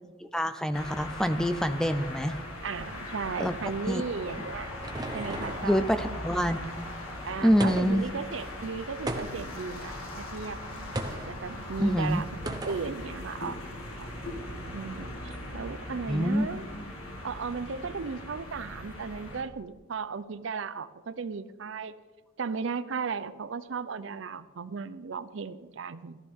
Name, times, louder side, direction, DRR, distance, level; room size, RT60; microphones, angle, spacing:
voice 1, 0.2-2.4 3.4-3.5 3.9-4.0 5.6-6.9 7.4-8.0 11.8-12.2 16.1-16.5, equal, 5° left, 10 dB, 0.3 m, -26 dB
sound 1, 0.7-19.4, left 1 dB, 90° left, 1.8 m, -39 dB
voice 2, 2.6-4.7 5.1-6.2 7.2-10.7 11.1-13.6 14.0-14.1 14.7-16.7 17.2-21.9 22.4-26.2, right 5 dB, 65° right, 14 dB, 0.5 m, -36 dB
sound 2, 4.2-5.7 7.6-8.1 9.1-9.6 10.9-11.3 12.5-12.9, right 1 dB, 20° right, 0.7 m, -35 dB
14.5 x 12.5 x 3.6 m, 1.4 s
head